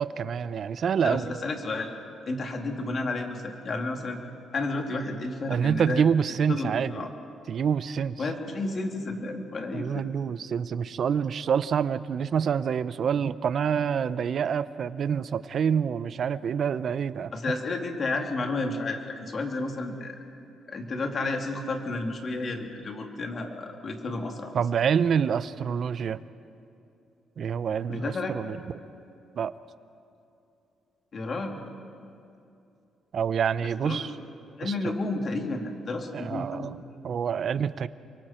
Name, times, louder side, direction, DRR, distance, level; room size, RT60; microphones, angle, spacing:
voice 1, 0.0-1.3 5.5-6.9 7.5-8.1 9.7-17.3 24.5-26.2 27.4-28.6 29.4-29.5 33.1-34.1 34.6-34.7 36.1-36.8 37.0-37.9, right 7 dB, 55° right, 15 dB, 0.7 m, -27 dB
voice 2, 1.0-1.9 2.3-4.2 4.5-6.0 6.5-7.1 8.2-10.1 17.3-20.2 20.7-24.6 27.9-28.3 31.1-31.6 33.6-34.1 34.6-36.7, left 2 dB, 45° left, 3 dB, 2.7 m, -31 dB
29.0 x 23.5 x 4.5 m, 2.6 s
cardioid pair, 90°, 0 cm